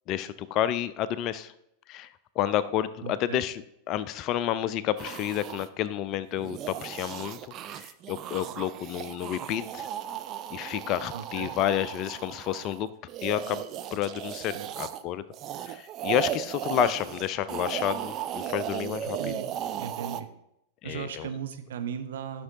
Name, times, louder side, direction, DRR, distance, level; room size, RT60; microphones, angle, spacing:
voice 1, 0.1-1.5 1.9-2.1 2.4-7.4 7.7-9.9 10.5-12.9 13.2-15.2 15.7-19.3 20.8-21.3, left 11 dB, 40° left, 15 dB, 0.4 m, -30 dB
voice 2, 3.0-3.4 11.1-11.5 14.5-14.7 19.2-19.5 19.7-20.3 20.8-22.4, right 8 dB, 60° right, 7 dB, 0.8 m, -37 dB
sound 1, 5.0-5.7 6.3-15.0 15.3-20.2, right 11 dB, 35° right, 0.4 m, -36 dB
13.0 x 6.0 x 2.8 m, 0.79 s
figure-of-eight pair, 90°, 0 cm